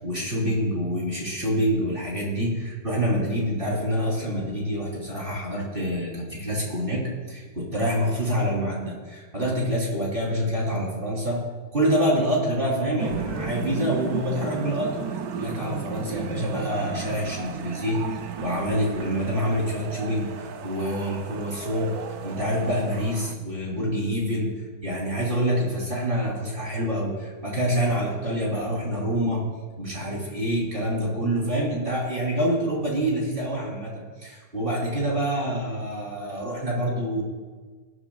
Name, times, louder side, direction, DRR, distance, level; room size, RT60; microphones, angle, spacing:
voice 1, 0.0-7.0 7.3-11.4 11.7-18.0 18.4-21.9 22.2-29.4 29.8-37.2, equal, 25° right, -4 dB, 3.8 m, -26 dB
sound 1, 13.0-23.3, right 6 dB, 60° right, 1.0 m, -34 dB
20.0 x 13.0 x 2.4 m, 1.4 s
omnidirectional pair, 2.3 m